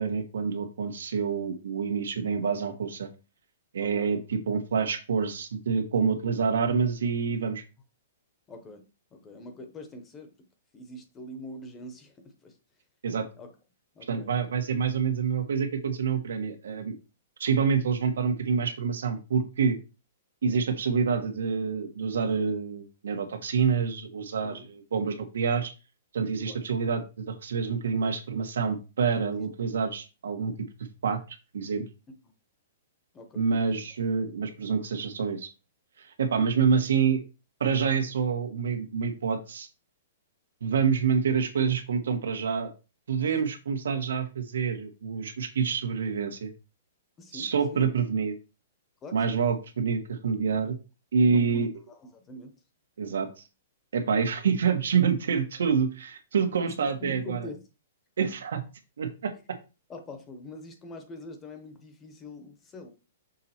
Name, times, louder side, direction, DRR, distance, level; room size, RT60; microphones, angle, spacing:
voice 1, 0.0-3.1 3.7-7.6 13.0-13.2 14.1-16.9 17.4-19.8 20.4-25.7 26.1-30.7 31.0-31.2 31.5-31.8 33.4-35.5 36.0-37.2 37.6-39.7 40.6-42.7 43.1-46.5 47.3-48.3 49.1-50.8 51.1-51.7 53.0-53.3 53.9-57.5 58.2-58.6 59.0-59.6, right 6 dB, 90° right, 6 dB, 1.4 m, -27 dB
voice 2, 3.8-4.2 8.5-8.9 9.1-10.3 10.7-12.6 13.3-13.5 13.9-14.6 24.4-24.7 26.4-26.7 29.4-29.5 33.1-33.8 43.3-43.5 47.2-47.8 49.0-49.4 51.3-52.5 56.5-57.6 58.2-58.3 59.9-62.9, left 1 dB, 15° left, 6 dB, 1.0 m, -44 dB
6.5 x 4.1 x 4.4 m, 0.30 s
hypercardioid pair, 170°, 0 cm